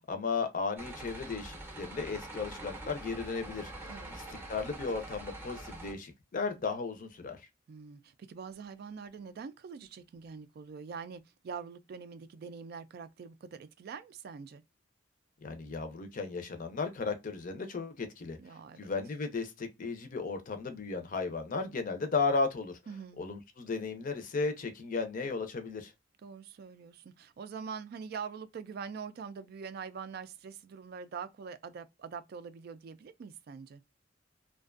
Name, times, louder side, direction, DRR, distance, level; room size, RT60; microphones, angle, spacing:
voice 1, 0.1-3.7 4.1-4.2 4.5-7.4 15.4-18.4 18.8-22.7 23.2-25.9, left 4 dB, 45° left, 0.5 m, -35 dB
sound 1, 0.8-5.9, right 1 dB, 10° right, 0.6 m, -44 dB
voice 2, 7.7-14.6 18.4-18.9 22.9-23.2 26.2-33.8, right 6 dB, 55° right, 0.3 m, -44 dB
2.5 x 2.2 x 2.3 m
head